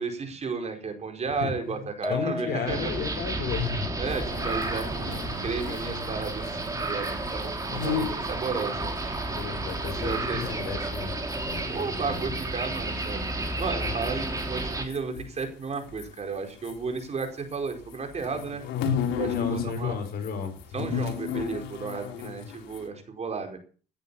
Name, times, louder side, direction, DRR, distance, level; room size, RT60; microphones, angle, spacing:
voice 1, 0.0-2.9 4.0-9.0 9.3-9.4 9.9-10.6 11.7-13.2 13.6-18.6 19.2-20.0 20.7-23.6, right 5 dB, 35° right, 4 dB, 4.8 m, -33 dB
voice 2, 1.4-1.8 2.1-3.9 9.3-11.1 11.4-12.3 19.2-20.6, left 7 dB, 55° left, 6 dB, 5.1 m, -33 dB
sound 1, 2.0-3.2, left 1 dB, 5° left, 1.6 m, -35 dB
sound 2, 2.7-14.9, right 2 dB, 20° right, 3.9 m, -32 dB
sound 3, 4.0-11.0 11.3-17.3 17.5-19.8 20.0-22.9, left 8 dB, 80° left, 4.1 m, -35 dB
18.0 x 10.0 x 7.0 m, 0.42 s
cardioid pair, 110°, 19 cm